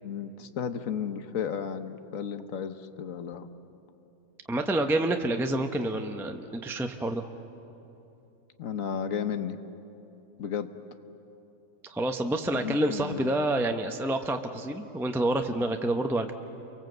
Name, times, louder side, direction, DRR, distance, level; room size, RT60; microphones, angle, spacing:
voice 1, 0.0-3.5 8.6-9.6 10.4-10.7 12.5-13.3, left 7 dB, 60° left, 10 dB, 1.4 m, -33 dB
voice 2, 4.5-7.2 11.9-16.3, right 1 dB, ahead, 5 dB, 0.7 m, -28 dB
30.0 x 24.0 x 8.0 m, 2.9 s
omnidirectional pair, 1.7 m